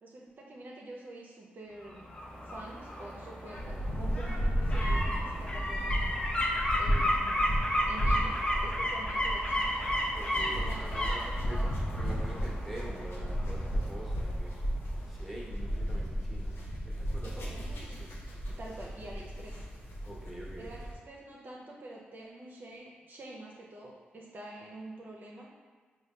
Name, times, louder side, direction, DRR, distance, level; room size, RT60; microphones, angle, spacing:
voice 1, 0.0-2.1 2.5-6.1 6.8-7.6 7.9-9.8 10.4-11.1 11.4-11.7 17.4-18.2 18.6-19.6 20.6-25.5, right 2 dB, 50° right, -3 dB, 0.5 m, -47 dB
sound 1, 1.8-14.7 15.0-15.1, equal, 25° left, 0.7 m, -33 dB
sound 2, 3.5-20.9, equal, 75° left, 0.6 m, -34 dB
voice 2, 10.2-11.6 12.0-14.6 15.1-16.6 17.0-17.5 20.0-20.7, right 1 dB, ahead, -4 dB, 1.0 m, -45 dB
3.8 x 2.2 x 3.1 m, 1.5 s
supercardioid pair, 45°, 4 cm